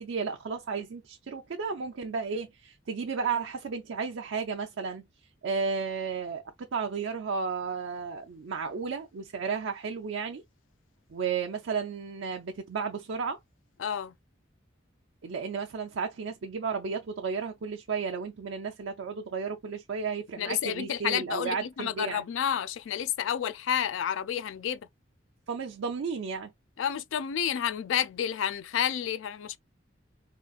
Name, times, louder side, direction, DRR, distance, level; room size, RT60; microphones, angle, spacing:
voice 1, 0.0-5.0 5.4-10.4 11.1-13.4 15.2-22.2 25.5-26.5, right 5 dB, 75° right, 0.5 m, -33 dB
voice 2, 13.8-14.1 20.4-24.8 26.8-29.6, left 9 dB, 80° left, 0.3 m, -30 dB
3.7 x 2.4 x 2.3 m
head